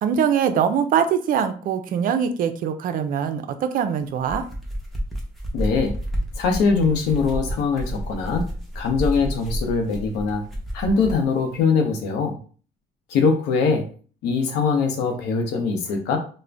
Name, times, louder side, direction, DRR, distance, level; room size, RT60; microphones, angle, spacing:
voice 1, 0.0-4.4, right 8 dB, 55° right, 9 dB, 0.4 m, -22 dB
sound 1, 4.1-11.3, equal, ahead, 0.7 m, -30 dB
voice 2, 5.5-6.0 6.4-8.4 8.7-10.4 10.7-12.4 13.1-13.9 14.2-16.2, left 5 dB, 85° left, 4 dB, 0.7 m, -22 dB
2.4 x 2.1 x 3.3 m, 0.40 s
cardioid pair, 110°, 17 cm